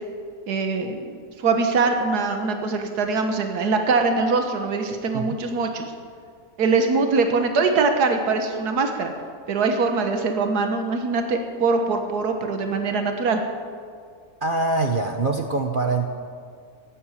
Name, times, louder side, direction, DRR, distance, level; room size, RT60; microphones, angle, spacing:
voice 1, 0.5-5.9 6.6-9.1 9.5-13.4, right 4 dB, 85° right, 5 dB, 1.8 m, -23 dB
voice 2, 14.4-16.1, right 3 dB, 40° right, 4 dB, 0.9 m, -24 dB
15.5 x 10.5 x 8.5 m, 2.1 s
omnidirectional pair, 1.6 m